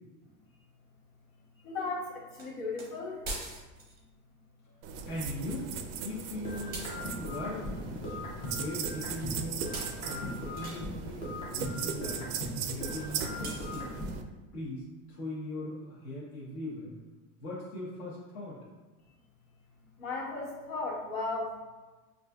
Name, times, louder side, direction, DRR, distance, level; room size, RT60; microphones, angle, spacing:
voice 1, 1.6-3.3 20.0-21.6, left 3 dB, 65° left, -5 dB, 1.4 m, -36 dB
sound 1, 2.4-2.5 2.8-2.9 3.2-4.0 6.7-7.1 8.7-8.8 9.2-9.3 9.7-10.9 13.4-14.0, right 2 dB, 25° right, 0.7 m, -42 dB
sound 2, 4.8-14.2, right 7 dB, 65° right, 0.5 m, -39 dB
voice 2, 5.0-5.7 6.0-8.2 8.5-9.6 10.0-12.3 12.6-13.9 14.5-16.9 17.4-18.6, left 1 dB, 45° left, -8 dB, 1.0 m, -40 dB
sound 3, 6.4-9.4 9.6-12.6 12.8-14.2, left 1 dB, 15° left, 0.5 m, -39 dB
5.7 x 2.6 x 2.3 m, 1.2 s
cardioid pair, 170°, 39 cm